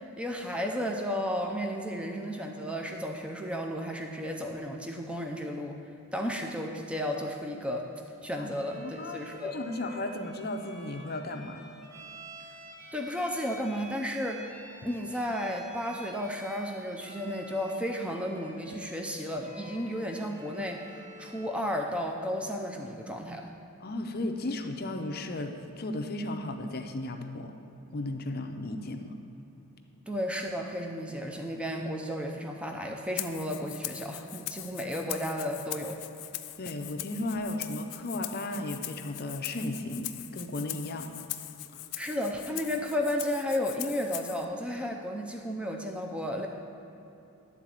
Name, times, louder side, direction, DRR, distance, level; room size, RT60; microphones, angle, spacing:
voice 1, 0.0-5.8 6.1-7.9 8.2-9.6 12.9-14.4 14.8-23.5 30.1-36.0 42.0-46.5, equal, 5° right, 2 dB, 0.5 m, -33 dB
Bowed string instrument, 8.5-21.6, equal, 35° right, 1.0 m, -49 dB
voice 2, 8.8-11.7 23.8-27.5 27.9-29.1 36.6-41.1 41.7-41.8, left 2 dB, 45° left, 5 dB, 0.6 m, -35 dB
Rattle (instrument), 33.2-44.4, left 15 dB, 90° left, 0.4 m, -41 dB
11.0 x 4.0 x 7.6 m, 3.0 s
head